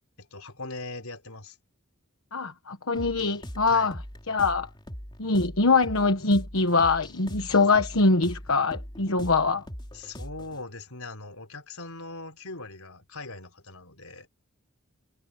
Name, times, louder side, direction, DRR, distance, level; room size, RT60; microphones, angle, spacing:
voice 1, 0.2-1.6 3.7-3.9 9.9-14.3, left 3 dB, 85° left, 4.4 m, -40 dB
voice 2, 2.3-3.9 4.3-4.7 5.2-9.7, left 3 dB, 70° left, 1.3 m, -23 dB
sound 1, 3.0-10.6, equal, 20° left, 3.4 m, -41 dB
head